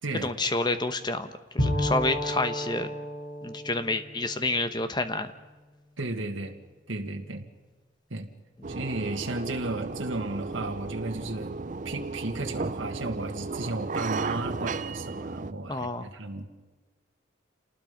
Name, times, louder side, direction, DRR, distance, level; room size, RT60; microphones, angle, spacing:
voice 1, 0.2-2.9 3.4-5.3 15.7-16.1, left 2 dB, 20° left, 10 dB, 1.1 m, -29 dB
Bowed string instrument, 1.6-5.3, left 1 dB, 55° left, 6.1 m, -32 dB
voice 2, 6.0-6.6 6.9-7.5 8.1-8.3 8.7-11.5 11.9-16.5, right 2 dB, 80° right, 3 dB, 1.9 m, -34 dB
sound 1, 8.6-15.5, right 3 dB, 40° right, 0.5 m, -34 dB
28.0 x 19.5 x 5.3 m, 1.3 s
head